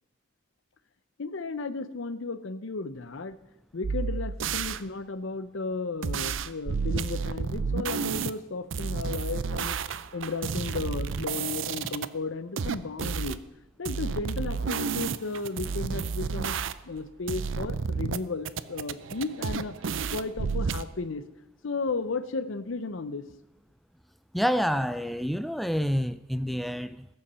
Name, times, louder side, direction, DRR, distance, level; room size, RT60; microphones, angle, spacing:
voice 1, 1.2-3.4 3.7-9.8 10.1-13.4 13.8-16.6 16.8-19.8 20.1-21.2 21.6-23.3, left 3 dB, 75° left, 13 dB, 0.7 m, -34 dB
sound 1, 3.8-4.8 6.0-8.3 8.7-12.1 12.6-13.4 13.9-17.0 17.3-18.2 18.5-20.8, right 5 dB, 70° right, 0.5 m, -31 dB
voice 2, 24.3-27.1, equal, ahead, 14 dB, 0.4 m, -28 dB
20.5 x 7.0 x 5.6 m, 0.99 s
head